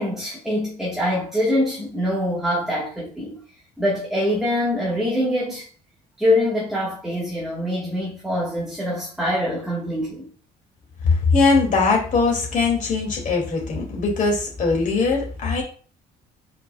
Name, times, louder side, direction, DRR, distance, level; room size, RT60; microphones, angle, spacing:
voice 1, 0.0-3.4 3.8-5.7 6.2-10.3, left 1 dB, 5° right, 1.3 m, -24 dB
voice 2, 11.0-15.6, left 4 dB, 50° left, 2.1 m, -20 dB
5.0 x 4.5 x 2.2 m
cardioid pair, 110°, 17 cm